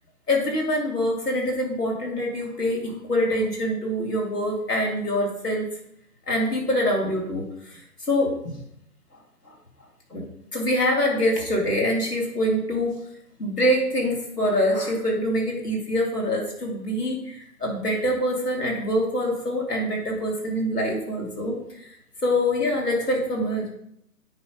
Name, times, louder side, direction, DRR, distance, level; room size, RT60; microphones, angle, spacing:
voice 1, 0.3-5.7 6.3-7.8 8.1-8.6 10.1-10.2 10.5-13.0 13.4-21.9 22.2-23.7, equal, 85° left, -1 dB, 2.7 m, -25 dB
9.2 x 3.1 x 5.2 m, 0.74 s
figure-of-eight pair, 135°, 46 cm